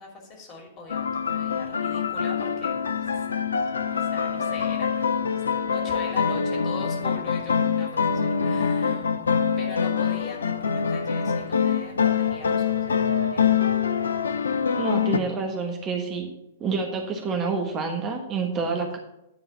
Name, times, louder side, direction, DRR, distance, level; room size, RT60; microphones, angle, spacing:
voice 1, 0.0-3.3 3.9-5.2 5.7-9.2 9.6-13.6, left 3 dB, 30° left, 0 dB, 2.6 m, -42 dB
sound 1, 0.9-15.2, left 6 dB, 70° left, 0.6 m, -25 dB
voice 2, 14.7-16.3 16.6-19.0, right 4 dB, 25° right, 3 dB, 1.2 m, -28 dB
9.8 x 3.9 x 6.8 m, 0.85 s
figure-of-eight pair, 105°, 0 cm